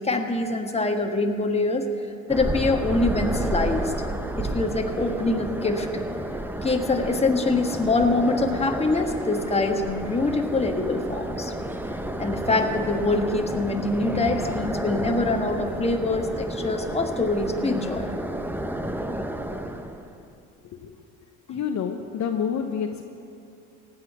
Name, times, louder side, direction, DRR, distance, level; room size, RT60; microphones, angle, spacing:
voice 1, 0.0-1.9 2.3-3.9 4.4-5.9 6.6-11.5 12.2-18.1, left 2 dB, 15° left, 4 dB, 1.5 m, -24 dB
sound 1, 2.3-20.2, right 1 dB, 5° right, 0.8 m, -31 dB
voice 2, 21.5-23.0, left 7 dB, 45° left, 5 dB, 0.9 m, -28 dB
16.0 x 5.7 x 9.9 m, 2.6 s
hypercardioid pair, 70°, 39 cm